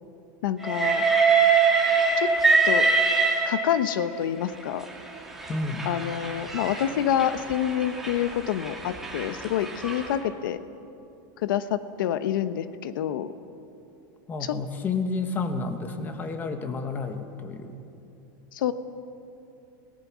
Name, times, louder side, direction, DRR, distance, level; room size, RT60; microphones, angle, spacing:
voice 1, 0.4-1.0 2.2-2.3 2.6-2.9 3.4-4.9 5.8-10.6 11.4-13.3 14.4-14.6 18.5-18.7, left 10 dB, 85° left, 12 dB, 0.9 m, -27 dB
Train, 0.6-4.0 4.9-10.1, right 4 dB, 5° right, 2.1 m, -24 dB
voice 2, 5.5-5.9 14.3-17.7, left 4 dB, 20° left, 7 dB, 1.4 m, -30 dB
28.0 x 18.5 x 6.2 m, 2.7 s
supercardioid pair, 165°, 11 cm